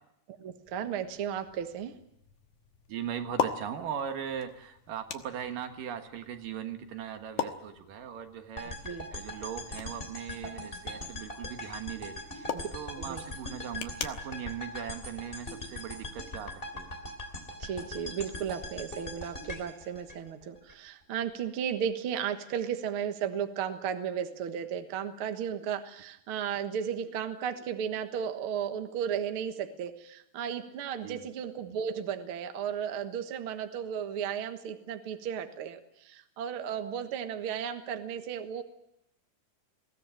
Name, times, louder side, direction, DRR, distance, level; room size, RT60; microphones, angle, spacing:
voice 1, 0.4-1.9 8.8-9.1 12.5-12.7 13.0-13.2 17.6-38.6, right 8 dB, 50° right, 7 dB, 1.8 m, -34 dB
sound 1, 0.7-15.9, left 8 dB, 65° left, 2.6 m, -42 dB
voice 2, 2.9-8.8 9.1-16.9 31.0-31.3, right 9 dB, 75° right, 7 dB, 3.1 m, -39 dB
sound 2, 8.6-20.7, left 1 dB, 15° left, 3.0 m, -41 dB
22.0 x 16.5 x 9.0 m, 0.80 s
omnidirectional pair, 4.0 m